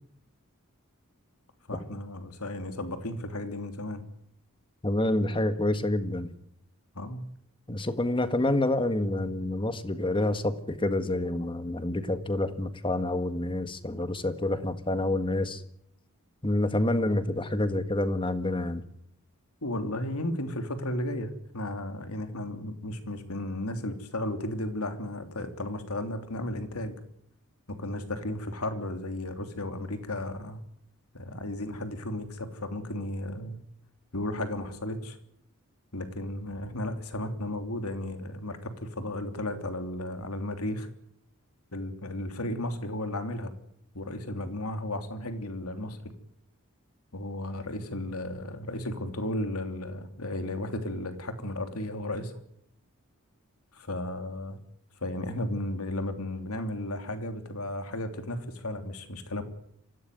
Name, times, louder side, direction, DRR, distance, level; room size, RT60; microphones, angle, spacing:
voice 1, 1.7-4.0 6.9-7.3 19.6-26.9 27.7-30.6 31.1-33.6 34.1-35.2 35.9-40.9 41.7-43.5 43.9-46.0 47.1-52.3 53.7-54.6 55.0-59.4, left 1 dB, 90° left, 7 dB, 3.1 m, -34 dB
voice 2, 4.8-6.3 7.7-15.6 16.4-18.8, left 1 dB, 25° left, 10 dB, 1.7 m, -28 dB
24.5 x 16.5 x 9.4 m, 0.73 s
head